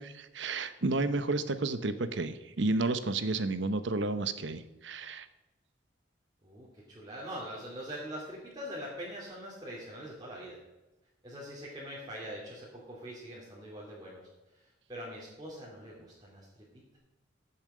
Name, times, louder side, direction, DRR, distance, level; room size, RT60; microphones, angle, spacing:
voice 1, 0.0-5.3, right 2 dB, 70° right, 12 dB, 0.9 m, -31 dB
voice 2, 6.4-10.6 11.2-14.2 14.5-16.5, equal, 20° right, -6 dB, 2.8 m, -43 dB
15.0 x 7.3 x 5.0 m, 1.0 s
head